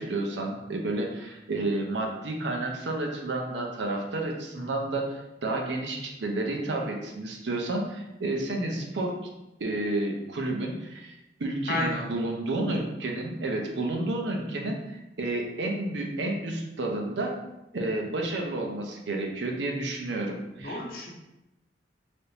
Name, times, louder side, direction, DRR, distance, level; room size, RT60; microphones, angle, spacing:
voice 1, 0.0-9.2 9.6-17.3 17.7-20.8, right 2 dB, 70° right, 1 dB, 0.6 m, -31 dB
voice 2, 11.7-12.1 20.6-21.1, left 2 dB, 50° left, -2 dB, 0.6 m, -31 dB
3.4 x 2.6 x 2.8 m, 0.94 s
head